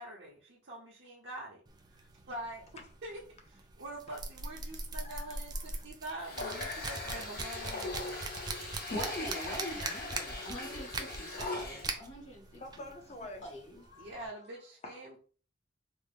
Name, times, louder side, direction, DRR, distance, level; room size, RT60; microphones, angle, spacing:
voice 1, 0.0-1.6 1.9-2.6 3.0-8.3 14.0-15.2, right 1 dB, 60° right, 0.7 m, -45 dB
sound 1, 1.7-14.3, right 3 dB, 20° right, 0.3 m, -42 dB
voice 2, 5.0-5.9 8.8-8.9 12.6-13.6 13.8-14.3 14.8-15.2, left 1 dB, 35° left, 0.5 m, -48 dB
Water tap faucet, 6.2-12.0, left 3 dB, 50° left, 0.9 m, -40 dB
voice 3, 8.9-12.6 13.4-13.8, left 1 dB, 70° left, 1.1 m, -41 dB
3.4 x 2.0 x 3.3 m
head